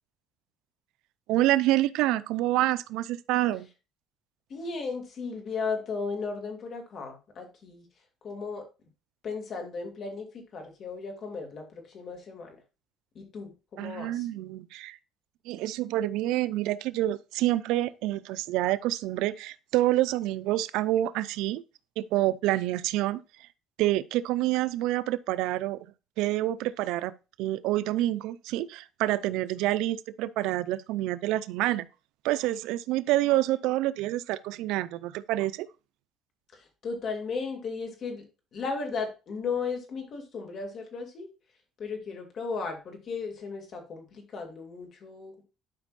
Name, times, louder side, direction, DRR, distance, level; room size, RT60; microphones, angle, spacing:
voice 1, 1.3-3.7 13.8-15.0 15.5-21.6 22.0-23.2 23.8-25.8 26.2-27.1 27.4-31.9 32.2-35.7, right 15 dB, 85° right, 0.4 m, -27 dB
voice 2, 4.5-7.9 8.2-8.6 9.2-12.6 13.1-14.3 36.5-38.2 38.5-41.3 41.8-45.4, left 4 dB, 45° left, 2.3 m, -35 dB
11.5 x 5.2 x 2.5 m
cardioid pair, 145°, 0 cm